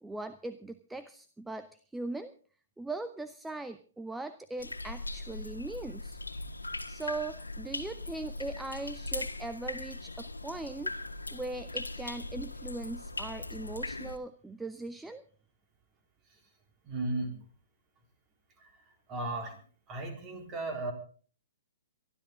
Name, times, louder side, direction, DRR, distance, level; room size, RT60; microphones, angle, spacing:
voice 1, 0.0-2.3 2.8-6.2 6.9-10.9 11.3-15.2, right 2 dB, 5° right, 11 dB, 0.7 m, -40 dB
sound 1, 4.6-14.2, left 2 dB, 85° left, 1.5 m, -39 dB
voice 2, 16.8-17.4 18.6-18.7 19.1-19.6 19.9-20.9, right 2 dB, 25° right, 4 dB, 3.8 m, -35 dB
23.5 x 12.5 x 3.7 m, 0.43 s
figure-of-eight pair, 120°, 0 cm